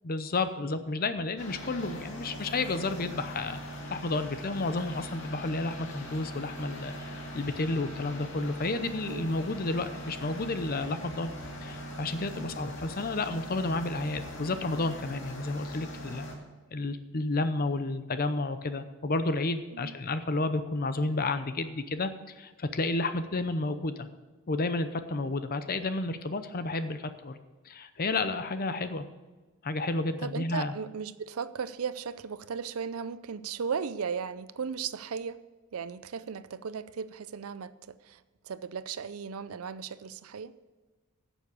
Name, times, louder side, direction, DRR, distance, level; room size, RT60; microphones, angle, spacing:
voice 1, 0.0-11.3 11.6-16.3 16.7-24.1 24.5-27.4 27.6-29.1 29.6-30.7, left 2 dB, 40° left, 10 dB, 0.7 m, -31 dB
sound 1, 1.4-16.3, equal, 60° left, 2.2 m, -41 dB
voice 2, 30.2-35.4 35.7-38.2 38.5-40.5, right 6 dB, 70° right, 15 dB, 0.5 m, -36 dB
11.0 x 7.2 x 7.0 m, 1.3 s
head